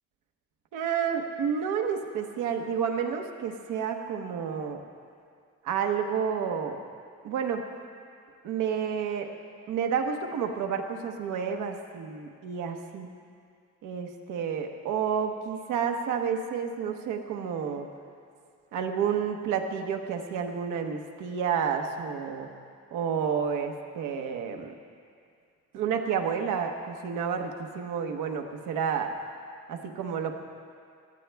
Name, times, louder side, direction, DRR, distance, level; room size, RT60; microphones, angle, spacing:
voice 1, 0.7-4.8 5.6-6.8 7.2-7.6 8.4-9.3 9.7-13.1 13.8-17.9 18.7-22.5 22.9-24.7 25.7-29.1 29.7-30.3, right 7 dB, 90° right, 4 dB, 1.1 m, -30 dB
18.0 x 13.0 x 3.4 m, 2.2 s
cardioid pair, 90°, 30 cm